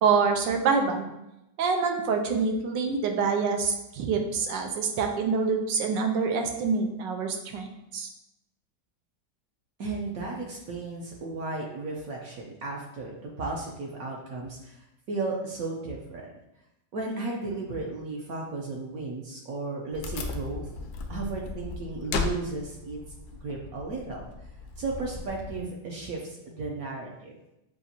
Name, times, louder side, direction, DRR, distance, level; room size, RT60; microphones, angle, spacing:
voice 1, 0.0-1.1 1.6-8.1, right 5 dB, 85° right, 4 dB, 1.3 m, -26 dB
voice 2, 9.8-14.8 15.1-16.3 16.9-20.7 21.1-23.0 23.4-24.3 24.8-27.4, right 3 dB, 65° right, -1 dB, 1.0 m, -34 dB
Wood, 19.9-25.6, left 4 dB, 70° left, 1.0 m, -36 dB
7.0 x 2.5 x 2.7 m, 0.88 s
omnidirectional pair, 1.9 m